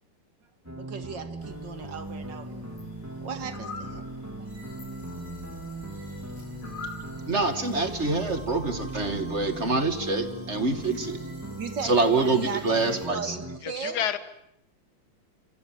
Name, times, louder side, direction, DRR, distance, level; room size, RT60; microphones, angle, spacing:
sound 1, 0.7-13.6, right 2 dB, 10° right, 1.9 m, -39 dB
voice 1, 0.8-2.7 3.2-4.5 11.6-14.1, right 6 dB, 60° right, 8 dB, 2.9 m, -37 dB
sound 2, 1.4-7.5, left 2 dB, 80° left, 4.7 m, -45 dB
sound 3, 4.4-13.1, equal, 35° left, 8.4 m, -47 dB
voice 2, 7.3-11.5 11.8-13.4, right 3 dB, 35° right, 8 dB, 2.5 m, -26 dB
voice 3, 13.6-14.2, left 9 dB, 55° left, 11 dB, 2.0 m, -29 dB
27.5 x 25.0 x 7.7 m, 0.77 s
omnidirectional pair, 2.2 m